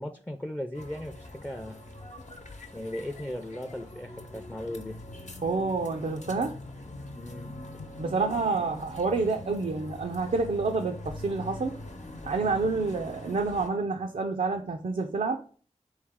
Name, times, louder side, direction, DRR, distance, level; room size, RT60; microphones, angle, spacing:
voice 1, 0.0-1.8 2.7-5.0 7.1-7.5 12.4-12.6, left 1 dB, 10° left, 0.5 m, -37 dB
sound 1, 0.7-13.7, left 2 dB, 70° left, 0.9 m, -43 dB
voice 2, 5.4-6.6 8.0-11.8 12.2-15.4, right 4 dB, 75° right, 0.5 m, -28 dB
4.1 x 3.2 x 3.6 m
wide cardioid pair, 45°, 13 cm